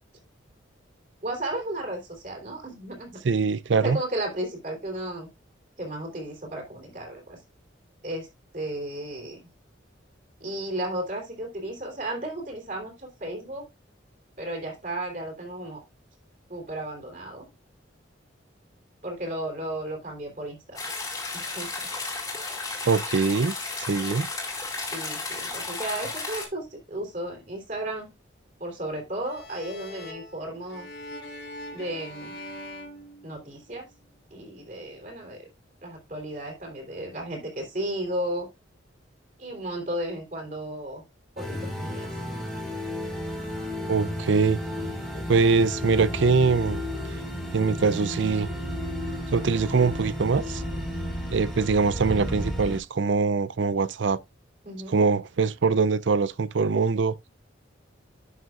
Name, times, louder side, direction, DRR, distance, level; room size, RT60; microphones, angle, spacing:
voice 1, 1.2-3.2 3.8-5.3 5.8-7.4 8.0-9.4 10.4-13.7 14.4-15.8 16.5-17.5 19.0-20.9 21.3-21.9 24.9-28.1 28.6-30.9 31.7-32.4 33.2-33.9 34.3-35.5 35.8-38.5 39.4-41.0 41.4-42.2 45.1-45.2 54.6-55.0, right 1 dB, 45° right, 3.6 m, -34 dB
voice 2, 3.2-4.0 22.9-23.5 23.8-24.3 43.9-44.6 45.3-46.8 47.5-48.5 49.3-50.6 51.3-54.2 54.9-57.1, right 4 dB, 70° right, 0.5 m, -23 dB
sound 1, 20.7-26.5, left 3 dB, 20° left, 2.4 m, -33 dB
sound 2, 29.2-33.9, left 1 dB, 55° left, 1.4 m, -42 dB
sound 3, 41.4-52.8, equal, ahead, 2.5 m, -33 dB
11.0 x 6.4 x 2.5 m
head